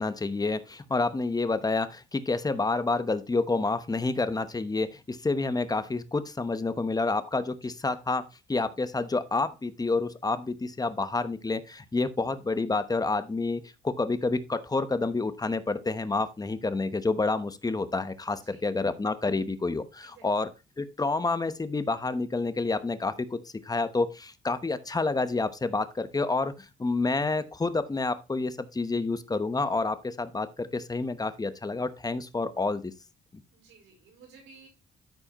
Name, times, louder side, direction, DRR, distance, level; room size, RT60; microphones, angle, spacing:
voice 1, 0.0-20.5 20.8-32.9, left 3 dB, 20° left, 12 dB, 0.9 m, -29 dB
voice 2, 33.5-34.7, right 5 dB, 85° right, -1 dB, 4.6 m, -54 dB
13.0 x 4.8 x 2.9 m, 0.28 s
cardioid pair, 90°, 20 cm